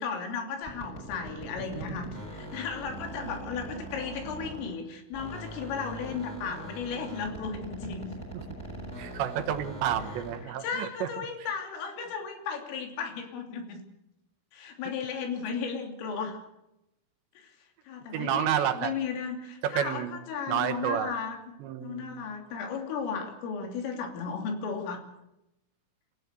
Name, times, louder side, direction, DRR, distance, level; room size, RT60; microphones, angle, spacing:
voice 1, 0.0-8.1 10.6-13.8 14.5-16.4 17.4-17.5 17.9-21.4 21.8-25.1, left 6 dB, 85° left, 5 dB, 5.6 m, -35 dB
sound 1, 0.6-4.8 5.1-10.5, right 1 dB, 15° left, 7.0 m, -41 dB
voice 2, 9.0-11.3 18.1-18.9 19.6-20.2 20.5-21.2 21.6-22.3, right 10 dB, 70° right, 10 dB, 3.2 m, -30 dB
27.0 x 15.5 x 8.2 m, 0.87 s
omnidirectional pair, 5.7 m